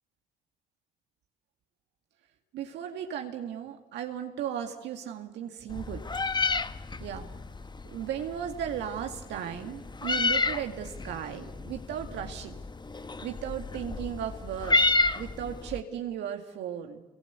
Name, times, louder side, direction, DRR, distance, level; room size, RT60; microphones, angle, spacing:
voice 1, 2.5-6.0 7.0-7.3 7.8-12.6 13.2-14.8 15.2-17.0, right 9 dB, 70° right, 4 dB, 2.2 m, -36 dB
Meow, 5.7-15.8, left 3 dB, 25° left, 1.3 m, -31 dB
26.5 x 24.0 x 8.2 m, 1.0 s
hypercardioid pair, 50°, 18 cm